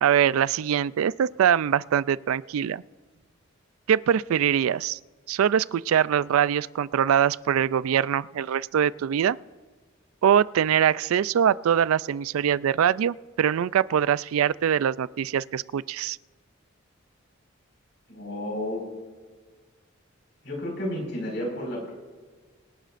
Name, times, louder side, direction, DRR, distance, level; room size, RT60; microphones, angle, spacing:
voice 1, 0.0-2.8 3.9-5.0 5.3-9.4 10.2-16.2, right 9 dB, 85° right, 19 dB, 0.3 m, -23 dB
voice 2, 18.1-18.9 20.4-21.9, left 1 dB, 55° left, -1 dB, 5.1 m, -31 dB
25.0 x 11.5 x 2.5 m, 1.4 s
head